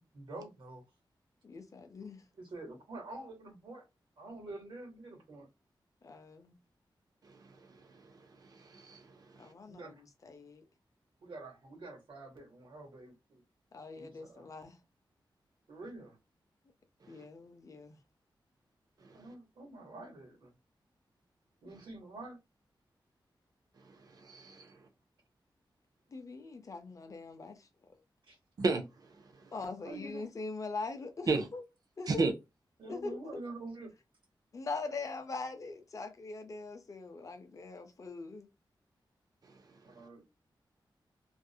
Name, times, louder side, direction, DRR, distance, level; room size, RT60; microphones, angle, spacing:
voice 1, 0.1-0.8 2.4-3.8 4.2-5.5 9.7-10.0 11.2-13.4 14.0-14.5 15.7-16.2 19.1-20.5 21.6-22.4 28.3-28.4 29.8-30.2 32.8-33.9 39.8-40.2, right 2 dB, 80° right, 1.1 m, -47 dB
voice 2, 1.4-2.3 6.0-6.6 9.4-10.7 13.7-14.8 17.1-18.0 26.1-28.0 29.5-31.6 32.0-32.3 32.9-33.4 34.5-38.5, left 3 dB, 40° left, 0.5 m, -42 dB
voice 3, 8.4-9.5 19.0-19.3 23.8-24.7 28.6-28.8 29.1-29.5 31.3-31.5 32.1-32.3, right 3 dB, 50° right, 0.5 m, -34 dB
2.4 x 2.0 x 2.6 m
wide cardioid pair, 165°, 8 cm